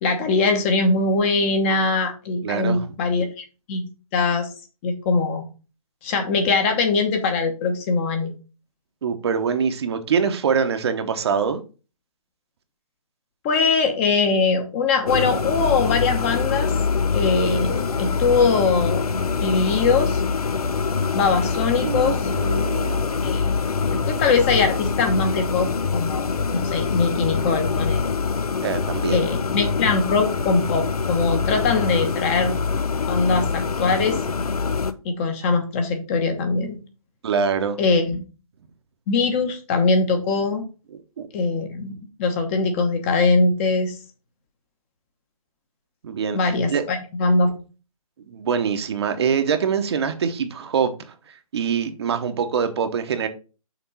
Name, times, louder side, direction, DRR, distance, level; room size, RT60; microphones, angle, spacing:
voice 1, 0.0-3.8 4.1-4.5 4.8-5.4 6.0-8.3 13.4-16.7 17.1-20.2 21.1-22.3 23.2-23.6 23.9-25.7 25.9-28.1 29.1-32.5 33.1-34.4 35.0-36.8 37.8-38.2 39.1-40.6 41.3-44.0 46.3-47.6, left 4 dB, 20° left, 1.0 m, -22 dB
voice 2, 2.4-2.9 9.0-11.6 21.8-23.2 28.6-29.2 37.2-37.8 41.2-41.3 46.0-46.8 48.3-53.3, right 6 dB, 45° right, 0.9 m, -24 dB
sound 1, 15.1-34.9, left 5 dB, 90° left, 0.8 m, -24 dB
6.0 x 3.7 x 5.4 m
hypercardioid pair, 155°, 19 cm